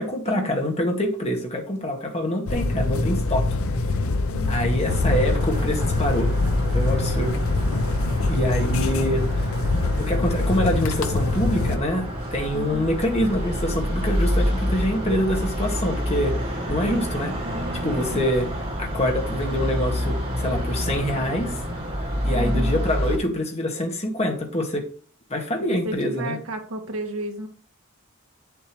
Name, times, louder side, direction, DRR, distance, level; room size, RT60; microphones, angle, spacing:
voice 1, 0.0-3.5 4.5-6.3 6.7-7.4 8.3-9.2 9.9-12.0 12.3-17.3 17.8-18.5 18.8-21.6 22.2-24.9 25.3-26.4, left 1 dB, 30° left, 2 dB, 2.0 m, -25 dB
sound 1, 2.5-11.8, left 2 dB, 75° left, 0.7 m, -24 dB
voice 2, 4.3-4.8 12.5-12.9 18.1-18.3 22.3-22.8 25.6-27.5, right 1 dB, 70° right, 3 dB, 1.8 m, -33 dB
sound 2, 4.8-23.2, equal, 30° right, 3.6 m, -28 dB
8.3 x 7.5 x 3.1 m, 0.41 s
head